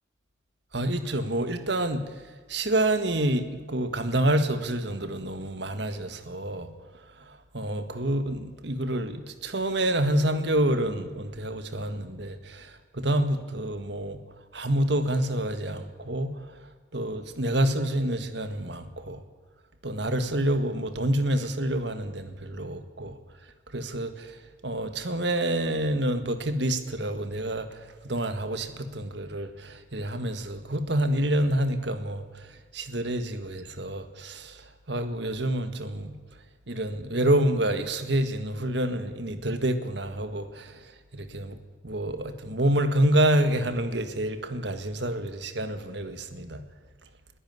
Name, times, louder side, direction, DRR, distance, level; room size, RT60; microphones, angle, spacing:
voice 1, 0.7-14.2 14.5-19.2 19.8-36.2 36.7-41.6 41.8-46.6, right 1 dB, 60° right, 1.7 m, -28 dB
22.0 x 13.5 x 9.5 m
head